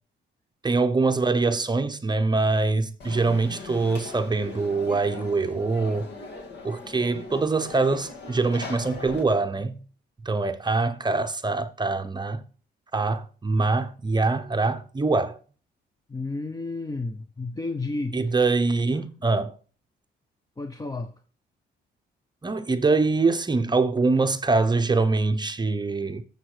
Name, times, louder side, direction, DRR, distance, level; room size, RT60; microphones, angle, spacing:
voice 1, 0.6-6.1 6.6-9.8 10.2-12.4 12.9-15.4 18.1-19.5 22.4-26.2, right 3 dB, 20° right, 0.8 m, -24 dB
Conversation / Crowd, 3.0-9.2, left 4 dB, 60° left, 2.1 m, -39 dB
voice 2, 16.1-18.2 20.6-21.1, left 3 dB, 20° left, 0.7 m, -31 dB
14.0 x 6.8 x 3.3 m
cardioid pair, 90°, 20 cm